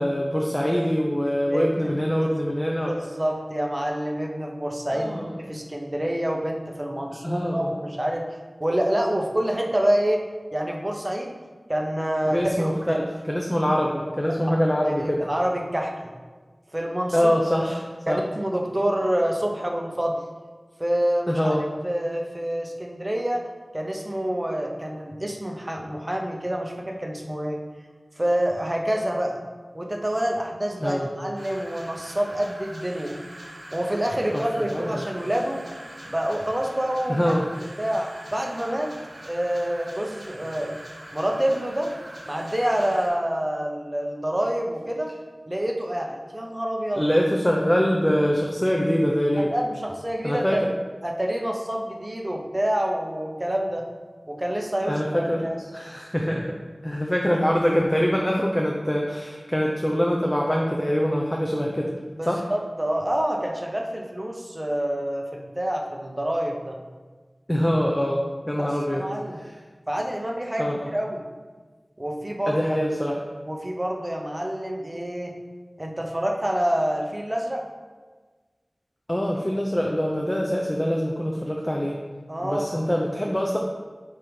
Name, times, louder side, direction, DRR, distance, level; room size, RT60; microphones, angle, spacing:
voice 1, 0.0-2.9 4.9-5.3 7.2-7.7 12.3-15.2 17.1-18.2 21.3-21.6 30.8-31.1 34.3-34.4 34.7-35.0 37.1-37.4 46.9-49.5 50.2-50.6 54.9-55.5 55.7-56.6 56.8-61.9 62.3-62.4 67.5-69.0 69.4-69.5 70.6-70.9 72.5-73.2 79.1-82.0 82.4-83.6, equal, 15° left, -1 dB, 0.7 m, -24 dB
voice 2, 1.5-1.9 2.2-2.3 2.9-8.3 8.6-10.2 10.5-11.3 11.7-13.0 14.8-15.9 16.7-17.3 18.1-20.2 20.8-21.5 21.8-23.4 23.7-27.6 28.2-29.4 29.7-33.2 33.7-35.6 36.1-37.3 37.8-40.8 41.1-41.9 42.3-45.1 45.5-47.0 49.3-50.6 51.0-53.8 54.3-55.5 62.1-66.8 68.6-69.4 69.9-71.2 72.0-72.6 73.5-75.3 75.8-77.6 82.3-82.8, right 1 dB, 25° right, 1 dB, 0.9 m, -27 dB
sound 1, 31.3-43.1, right 1 dB, 70° right, 1.6 m, -43 dB
7.3 x 3.0 x 5.2 m, 1.4 s
wide cardioid pair, 55°, 0 cm